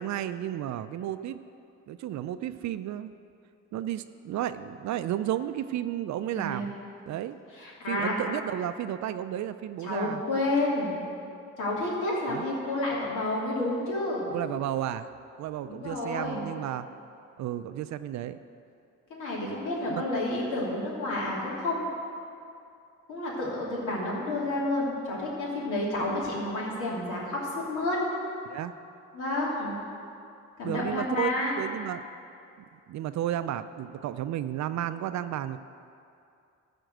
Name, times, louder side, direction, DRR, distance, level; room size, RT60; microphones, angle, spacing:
voice 1, 0.0-1.4 1.9-3.1 3.7-6.7 7.1-7.4 7.9-10.2 12.3-12.4 14.3-15.1 15.4-16.9 17.4-18.4 19.9-20.0 28.5-28.7 30.6-31.3 31.6-32.0 32.7-35.6, right 11 dB, 65° right, 11 dB, 0.4 m, -32 dB
voice 2, 6.3-6.7 7.6-8.2 9.8-11.0 11.6-14.3 15.6-16.5 19.1-21.8 23.1-28.0 29.1-29.8 30.6-31.6, left 2 dB, 85° left, -5 dB, 2.9 m, -30 dB
13.0 x 4.5 x 7.8 m, 2.5 s
cardioid pair, 90°, 30 cm